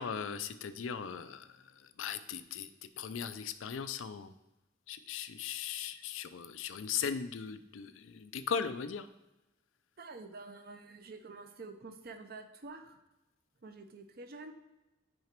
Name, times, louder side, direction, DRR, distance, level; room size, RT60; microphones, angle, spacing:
voice 1, 0.0-1.5 2.0-2.7 3.0-4.3 4.9-9.1, left 7 dB, 90° left, 12 dB, 0.4 m, -38 dB
voice 2, 10.0-13.0 13.6-14.5, right 3 dB, 50° right, 7 dB, 0.7 m, -48 dB
6.3 x 4.9 x 4.4 m, 0.99 s
head